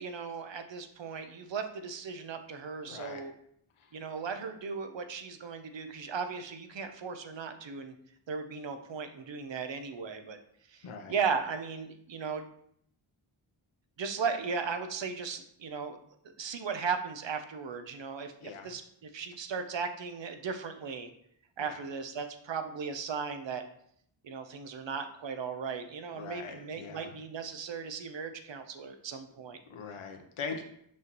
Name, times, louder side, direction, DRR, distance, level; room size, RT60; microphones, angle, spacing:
voice 1, 0.0-3.3 3.9-7.9 8.3-10.4 10.7-12.4 14.0-16.0 16.4-21.1 21.6-23.6 24.2-29.6, right 5 dB, 60° right, 8 dB, 0.8 m, -36 dB
voice 2, 2.8-3.2 3.8-3.9 10.8-11.1 18.4-18.7 21.6-21.8 26.1-27.2 29.7-30.6, left 5 dB, 80° left, 5 dB, 0.8 m, -41 dB
6.2 x 5.6 x 3.0 m, 0.69 s
wide cardioid pair, 140°, 49 cm